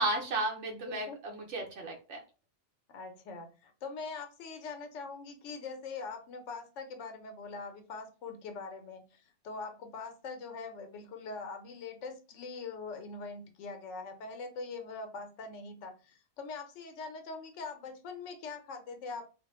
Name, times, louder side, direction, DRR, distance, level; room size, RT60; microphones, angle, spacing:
voice 1, 0.0-2.2, right 2 dB, 80° right, 1 dB, 1.0 m, -33 dB
voice 2, 0.7-1.2 2.9-19.2, left 4 dB, 80° left, 6 dB, 0.9 m, -43 dB
2.4 x 2.1 x 2.9 m, 0.34 s
omnidirectional pair, 1.2 m